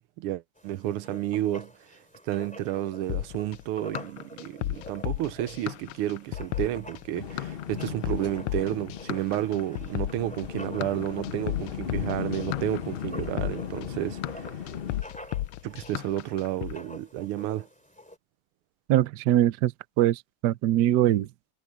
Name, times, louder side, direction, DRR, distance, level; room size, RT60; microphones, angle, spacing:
voice 1, 0.0-1.7 2.2-14.5 15.6-17.7, right 13 dB, 85° right, 1.6 m, -31 dB
Writing, 0.6-18.2, equal, 5° left, 2.5 m, -48 dB
sound 1, 3.1-16.7, left 15 dB, 90° left, 1.5 m, -34 dB
sound 2, 7.1-15.0, left 8 dB, 65° left, 0.5 m, -37 dB
voice 2, 18.9-19.7 20.0-21.3, right 13 dB, 65° right, 1.1 m, -22 dB
omnidirectional pair, 2.4 m